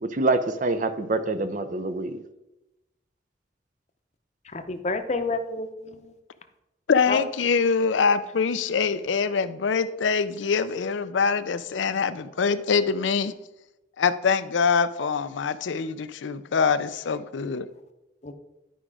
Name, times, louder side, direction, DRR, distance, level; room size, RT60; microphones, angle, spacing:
voice 1, 0.0-2.2, right 2 dB, 45° right, 10 dB, 0.6 m, -26 dB
voice 2, 4.4-6.1 7.1-7.2 18.2-18.3, left 3 dB, 40° left, 7 dB, 0.7 m, -29 dB
voice 3, 6.9-13.3 14.0-17.7, left 5 dB, 85° left, 12 dB, 0.5 m, -24 dB
11.0 x 5.0 x 4.9 m, 0.95 s
head